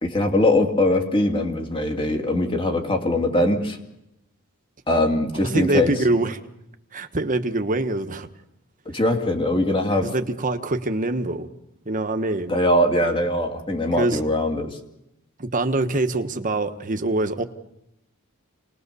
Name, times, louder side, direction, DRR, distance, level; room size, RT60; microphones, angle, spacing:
voice 1, 0.0-3.8 4.9-5.9 8.9-10.1 12.5-14.8, left 1 dB, 25° left, 4 dB, 2.5 m, -21 dB
voice 2, 5.4-6.4 6.9-8.3 10.0-11.5 11.8-12.5 14.0-14.2 15.4-17.4, right 2 dB, 35° right, 7 dB, 1.3 m, -24 dB
27.5 x 20.5 x 6.9 m, 0.85 s
head